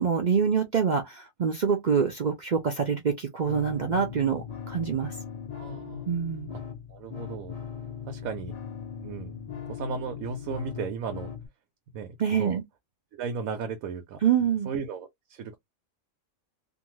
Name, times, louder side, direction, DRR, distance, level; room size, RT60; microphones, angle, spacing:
voice 1, 0.0-5.1 6.1-6.5 12.2-12.6 14.2-14.7, right 7 dB, 60° right, 0.4 m, -26 dB
sound 1, 3.5-11.5, left 7 dB, 85° left, 0.3 m, -39 dB
voice 2, 5.5-6.1 6.5-6.6 6.9-7.5 8.1-8.5 9.0-9.4 9.7-11.3 11.9-12.6 13.1-14.2 14.6-15.6, right 5 dB, 90° right, 1.1 m, -35 dB
2.6 x 2.5 x 3.0 m
omnidirectional pair, 1.4 m